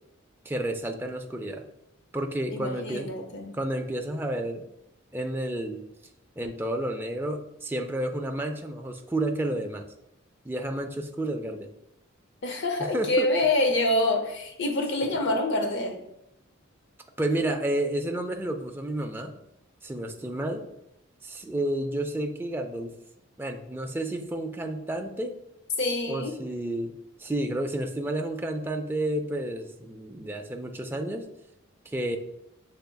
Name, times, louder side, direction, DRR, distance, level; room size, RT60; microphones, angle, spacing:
voice 1, 0.5-1.6 2.1-3.2 3.5-4.6 5.1-5.8 6.4-9.9 10.4-11.7 12.9-13.3 17.2-19.3 19.8-20.7 21.2-22.9 23.4-25.4 26.0-26.9 27.2-31.3 31.9-32.2, right 1 dB, 10° right, 4 dB, 0.4 m, -31 dB
voice 2, 2.5-3.5 12.4-16.0 25.8-26.3, left 1 dB, 60° left, 4 dB, 0.7 m, -26 dB
6.7 x 3.4 x 2.3 m, 0.80 s
head